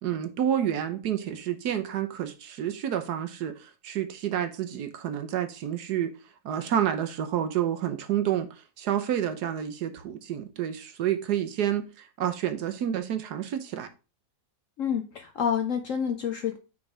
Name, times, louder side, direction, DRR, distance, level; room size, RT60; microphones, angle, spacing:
voice 1, 0.0-6.1 6.4-13.9, right 10 dB, 65° right, 1.2 m, -29 dB
voice 2, 14.8-16.6, left 8 dB, 65° left, 0.8 m, -28 dB
6.1 x 3.8 x 4.8 m
omnidirectional pair, 2.0 m